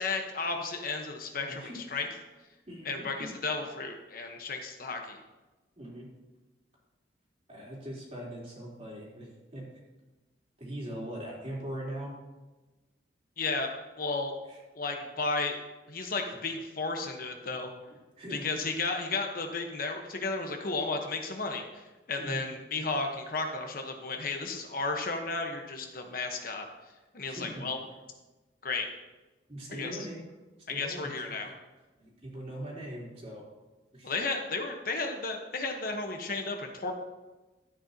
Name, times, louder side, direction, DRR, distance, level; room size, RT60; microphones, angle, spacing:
voice 1, 0.0-2.1 2.8-5.2 13.4-13.7 14.0-14.3 14.7-15.6 15.9-17.7 18.3-26.7 27.1-27.8 28.6-28.9 29.7-30.0 30.7-31.5 34.0-36.9, left 3 dB, 55° left, 4 dB, 1.1 m, -33 dB
voice 2, 1.5-1.9 2.7-3.3 5.8-6.1 7.5-9.6 10.6-12.2 14.5-14.6 18.2-18.5 22.2-22.4 27.3-27.7 29.5-30.2 30.7-31.1 31.4-31.5 32.0-33.4 33.9-34.1, right 1 dB, 40° right, -5 dB, 3.6 m, -41 dB
13.5 x 9.1 x 2.9 m, 1.1 s
head